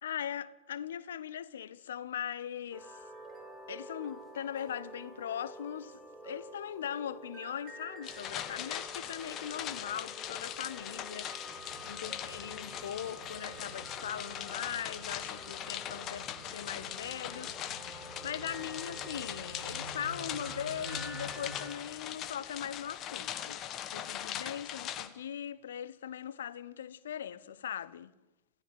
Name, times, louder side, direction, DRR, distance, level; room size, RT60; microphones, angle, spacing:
voice 1, 0.0-3.0 3.7-23.6 23.9-28.1, left 9 dB, 65° left, 0.9 m, -40 dB
sound 1, 2.7-21.8, right 1 dB, 10° right, 5.7 m, -50 dB
sound 2, 8.0-25.1, left 11 dB, 35° left, 1.6 m, -41 dB
sound 3, 11.5-21.6, right 2 dB, 50° right, 3.6 m, -50 dB
28.0 x 16.0 x 8.1 m
figure-of-eight pair, 90°, 0 cm